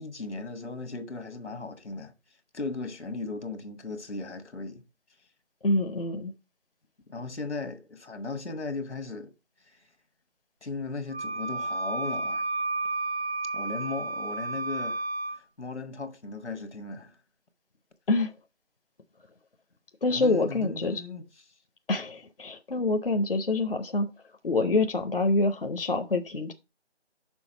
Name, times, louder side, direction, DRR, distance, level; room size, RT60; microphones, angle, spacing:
voice 1, 0.0-2.1 2.5-4.9 7.1-9.3 9.7-9.8 10.6-12.5 13.5-15.1 15.6-17.2 20.1-21.3, left 3 dB, 80° left, 1.4 m, -37 dB
voice 2, 5.6-6.3 18.1-18.3 20.0-21.0 21.9-24.1 24.4-26.5, left 2 dB, 55° left, 0.7 m, -26 dB
Wind instrument woodwind instrument, 11.1-15.4, right 3 dB, 70° right, 0.8 m, -31 dB
6.2 x 3.7 x 5.7 m
figure-of-eight pair, 180°, 33 cm